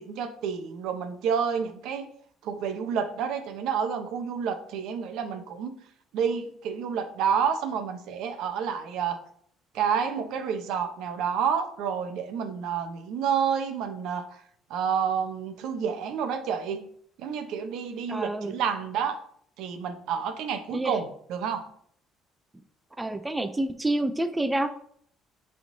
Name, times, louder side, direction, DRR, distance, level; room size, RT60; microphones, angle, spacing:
voice 1, 0.0-2.1 2.4-5.8 6.1-9.2 9.7-14.3 14.7-16.8 17.2-19.2 19.6-21.7, right 7 dB, 70° right, 7 dB, 0.8 m, -29 dB
voice 2, 18.1-18.5 20.7-21.0 23.0-24.7, right 1 dB, 10° right, 8 dB, 0.3 m, -28 dB
10.0 x 3.6 x 2.6 m, 0.63 s
cardioid pair, 155°, 0 cm